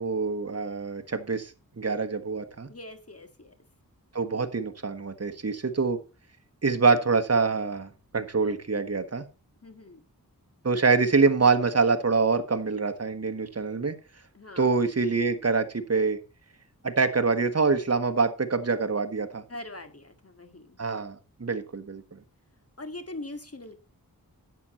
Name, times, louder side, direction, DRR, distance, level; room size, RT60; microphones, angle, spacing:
voice 1, 0.0-1.5 1.8-2.7 4.1-6.0 6.6-9.2 10.6-13.9 14.6-16.2 16.8-19.4 20.8-22.0, right 4 dB, 45° right, 8 dB, 1.4 m, -25 dB
voice 2, 2.7-3.5 9.6-10.0 14.3-14.7 19.5-20.8 22.8-23.8, left 2 dB, 40° left, 8 dB, 1.8 m, -42 dB
10.5 x 7.6 x 4.3 m, 0.30 s
wide cardioid pair, 45°, 36 cm